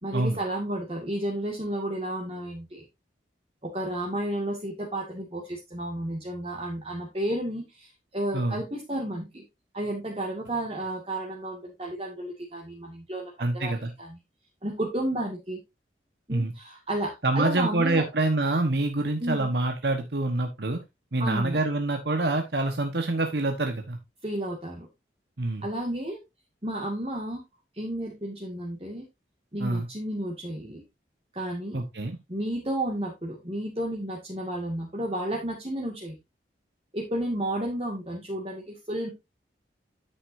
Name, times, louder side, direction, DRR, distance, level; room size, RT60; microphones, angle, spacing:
voice 1, 0.0-2.8 3.6-9.4 9.7-13.7 14.0-14.2 14.6-15.6 16.3-18.0 19.2-19.5 21.2-21.6 24.2-24.9 25.6-26.2 26.6-27.4 27.7-29.1 29.5-30.8 31.3-31.8 32.3-36.2 36.9-39.1, right 1 dB, 30° right, -2 dB, 2.1 m, -32 dB
voice 2, 13.4-13.9 16.3-16.5 17.2-20.8 21.1-24.0 25.4-25.6 29.6-29.9 31.7-32.2, right 2 dB, 70° right, 5 dB, 1.3 m, -26 dB
9.9 x 8.1 x 2.7 m, 0.22 s
head